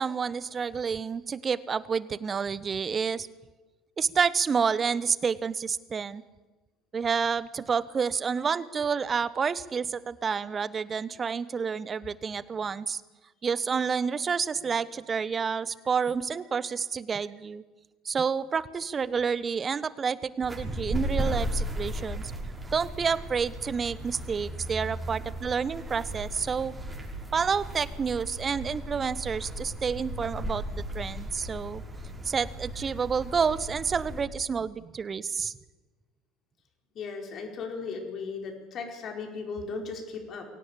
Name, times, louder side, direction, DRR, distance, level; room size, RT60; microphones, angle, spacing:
voice 1, 0.0-3.3 4.0-6.2 6.9-13.0 13.4-17.6 18.0-22.2 22.7-26.7 27.3-31.8 32.2-35.5, right 6 dB, 30° right, 18 dB, 1.1 m, -29 dB
sound 1, 20.4-34.2, right 1 dB, 15° right, 6.0 m, -36 dB
voice 2, 36.9-40.5, left 4 dB, 45° left, 4 dB, 5.1 m, -36 dB
23.0 x 17.5 x 8.5 m, 1.2 s
figure-of-eight pair, 65°, 0 cm